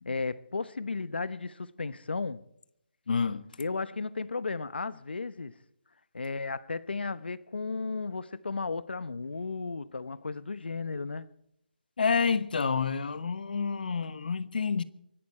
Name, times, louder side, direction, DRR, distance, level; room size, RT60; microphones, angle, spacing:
voice 1, 0.0-2.4 3.6-5.5 6.1-11.3, left 4 dB, 80° left, 1.0 m, -34 dB
voice 2, 3.1-3.5 12.0-14.8, left 5 dB, 60° left, 1.2 m, -28 dB
25.0 x 11.5 x 4.4 m
hypercardioid pair, 165°, 5 cm